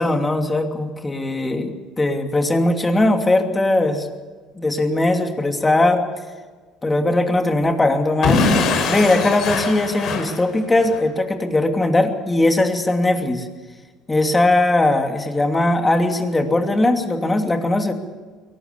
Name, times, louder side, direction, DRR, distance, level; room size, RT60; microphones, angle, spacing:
voice 1, 0.0-4.1 4.6-6.1 6.8-8.5 8.9-13.5 14.1-17.9, left 2 dB, 15° left, 4 dB, 2.8 m, -19 dB
Explosion / Shatter, 8.2-11.0, left 4 dB, 60° left, 4.6 m, -21 dB
22.5 x 18.5 x 8.3 m, 1.4 s
cardioid pair, 115°, 0 cm